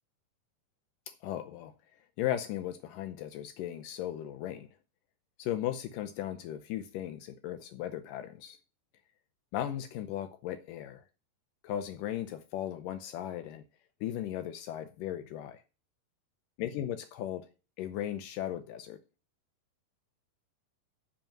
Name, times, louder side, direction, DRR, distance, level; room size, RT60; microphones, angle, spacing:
voice 1, 1.2-1.7 2.2-4.7 5.4-8.6 9.5-11.0 11.6-13.6 14.0-15.6 16.6-17.5 17.8-19.0, left 11 dB, 80° left, 1.9 m, -36 dB
9.9 x 5.3 x 7.3 m
omnidirectional pair, 4.8 m